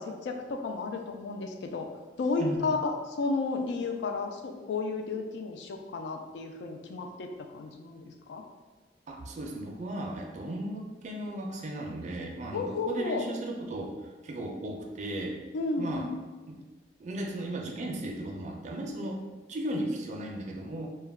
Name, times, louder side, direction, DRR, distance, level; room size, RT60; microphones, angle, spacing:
voice 1, 0.2-1.9 2.2-2.9 3.2-8.4 12.5-13.2 15.5-16.1, left 3 dB, 70° left, 4 dB, 0.3 m, -32 dB
voice 2, 2.4-2.7 9.1-15.4 15.8-16.1 16.5-16.6 17.0-19.2 19.5-20.9, right 1 dB, 40° right, 1 dB, 0.4 m, -36 dB
2.2 x 2.1 x 3.3 m, 1.3 s
head